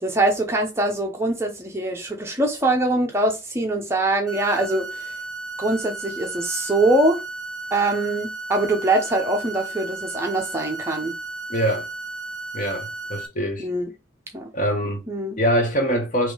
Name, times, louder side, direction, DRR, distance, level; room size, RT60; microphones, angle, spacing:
voice 1, 0.0-5.2 5.6-7.2 7.7-11.1 13.6-13.9 14.3-14.5 15.1-15.4, right 2 dB, 15° right, 0.6 m, -23 dB
sound 1, 4.3-13.3, right 3 dB, ahead, 1.3 m, -34 dB
voice 2, 11.5-11.9 12.5-13.7 14.5-15.0 15.4-16.3, equal, 40° left, 1.1 m, -23 dB
3.6 x 3.0 x 4.9 m
head